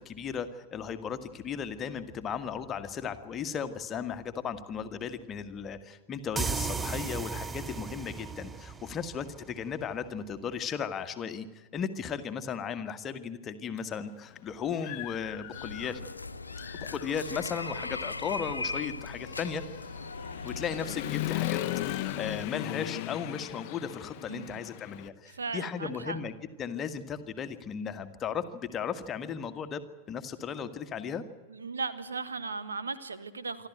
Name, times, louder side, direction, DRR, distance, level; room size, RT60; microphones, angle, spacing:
voice 1, 0.0-11.5 11.7-16.0 16.7-19.6 20.4-21.6 21.9-29.8 30.1-31.2, left 7 dB, 25° left, 9 dB, 1.6 m, -36 dB
sound 1, 6.4-9.9, right 5 dB, 15° right, 0.7 m, -35 dB
Human voice / Motorcycle, 13.8-13.9 14.4-16.1 16.5-25.1, left 16 dB, 45° left, 0.9 m, -38 dB
sound 2, 15.5-22.4, left 3 dB, 80° left, 1.0 m, -39 dB
voice 2, 24.3-24.6 25.3-26.2 31.5-33.7, right 4 dB, 75° right, 12 dB, 1.4 m, -37 dB
26.5 x 12.5 x 9.2 m, 1.2 s
figure-of-eight pair, 90°, 0 cm